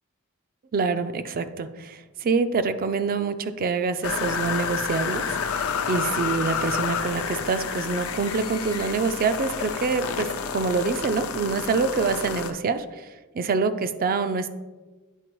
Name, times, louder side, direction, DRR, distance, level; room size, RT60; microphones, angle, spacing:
voice 1, 0.7-13.1 13.3-14.5, right 4 dB, 45° right, 11 dB, 0.4 m, -26 dB
sound 1, 4.0-12.5, left 6 dB, 80° left, 0.5 m, -29 dB
9.0 x 4.3 x 3.0 m, 1.2 s
head